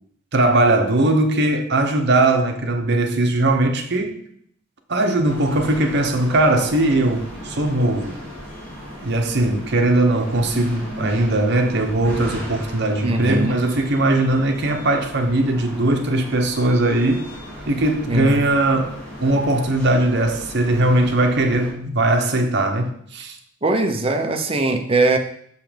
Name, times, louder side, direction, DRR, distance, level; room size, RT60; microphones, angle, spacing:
voice 1, 0.3-4.2 4.9-8.2 9.0-17.3 17.7-23.4, right 1 dB, 55° right, 1.1 m, -19 dB
sound 1, 5.2-21.7, equal, 10° left, 2.8 m, -36 dB
voice 2, 13.0-13.6 18.1-18.4 23.6-25.2, right 2 dB, 30° right, 0.8 m, -20 dB
6.4 x 5.6 x 5.2 m
head